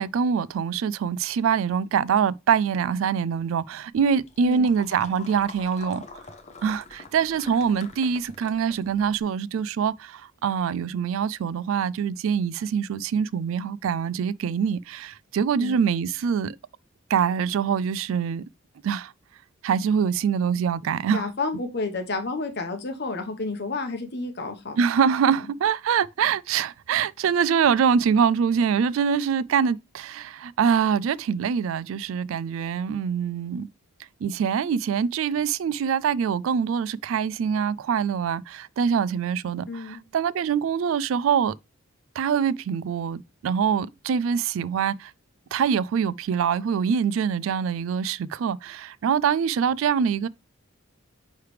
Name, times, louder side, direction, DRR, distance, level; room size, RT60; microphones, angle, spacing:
voice 1, 0.0-6.0 6.6-16.5 17.1-18.4 18.8-19.1 19.6-21.3 24.8-33.7 34.2-41.5 42.2-45.1 45.5-50.3, right 7 dB, 70° right, 0.3 m, -24 dB
sound 1, 3.9-9.2, left 4 dB, 35° left, 0.8 m, -45 dB
voice 2, 21.1-24.8 25.3-25.4 39.7-40.0, left 3 dB, 50° left, 1.1 m, -31 dB
9.3 x 3.3 x 3.3 m
head